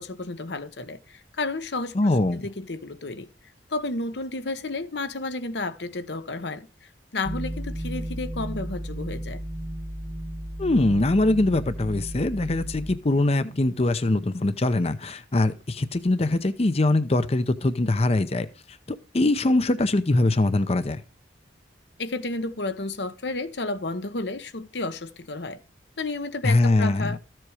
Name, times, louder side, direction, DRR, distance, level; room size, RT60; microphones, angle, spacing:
voice 1, 0.0-3.3 3.7-6.7 7.1-9.4 22.0-25.6 26.0-27.2, left 2 dB, 70° left, 1.0 m, -32 dB
voice 2, 1.9-2.4 10.6-21.0 26.4-27.2, left 2 dB, 35° left, 0.6 m, -22 dB
sound 1, 7.2-13.0, equal, 15° right, 0.7 m, -34 dB
14.0 x 7.7 x 4.9 m
head